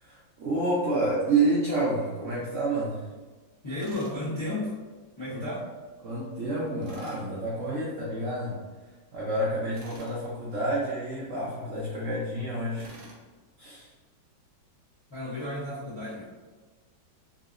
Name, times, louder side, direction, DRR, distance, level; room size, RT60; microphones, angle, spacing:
voice 1, 0.0-3.0 5.3-5.5 6.0-8.6 9.1-12.9 13.6-13.9, right 2 dB, 85° right, -6 dB, 0.6 m, -29 dB
voice 2, 3.6-4.7 5.2-5.7 15.1-16.3, left 1 dB, 45° left, -9 dB, 0.3 m, -33 dB
Tools, 3.8-4.2 6.8-7.2 9.7-10.2 12.8-13.2, right 2 dB, 60° right, 1.2 m, -48 dB
3.8 x 2.7 x 2.5 m, 1.3 s
omnidirectional pair, 2.1 m